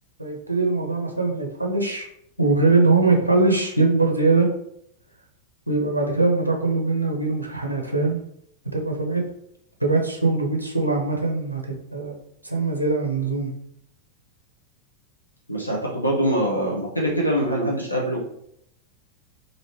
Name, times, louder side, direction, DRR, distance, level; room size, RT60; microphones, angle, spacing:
voice 1, 0.2-2.1 2.4-4.5 5.7-8.2 8.7-9.2 9.8-12.1 12.4-13.5, right 3 dB, 90° right, 1 dB, 0.5 m, -22 dB
voice 2, 15.5-18.2, equal, 85° left, -3 dB, 0.6 m, -23 dB
3.1 x 2.5 x 3.0 m, 0.72 s
figure-of-eight pair, 90°, 0 cm